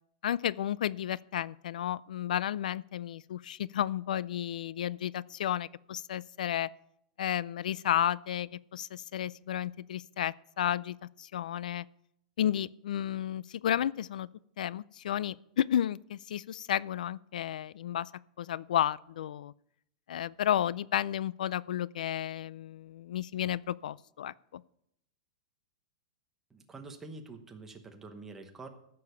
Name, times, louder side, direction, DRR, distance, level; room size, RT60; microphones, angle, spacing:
voice 1, 0.2-6.7 7.2-11.8 12.4-14.3 14.6-18.1 18.4-19.5 20.1-24.6, left 11 dB, 85° left, 22 dB, 0.4 m, -32 dB
voice 2, 26.5-28.7, right 3 dB, 10° right, 5 dB, 1.0 m, -46 dB
14.5 x 6.9 x 6.7 m, 0.75 s
supercardioid pair, 175°, 4 cm